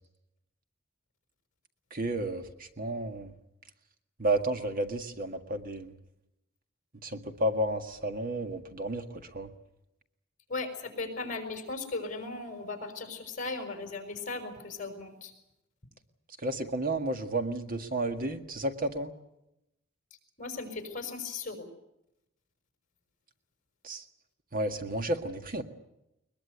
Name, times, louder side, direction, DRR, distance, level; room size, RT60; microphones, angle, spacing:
voice 1, 1.9-2.4 2.8-3.3 4.2-5.9 7.0-9.1 9.3-9.5 16.4-19.1 23.8-24.0 24.5-25.6, right 1 dB, 45° right, 6 dB, 1.9 m, -31 dB
voice 2, 10.5-15.3 20.4-21.7, left 3 dB, 40° left, 6 dB, 5.6 m, -37 dB
22.0 x 21.5 x 8.2 m, 0.85 s
head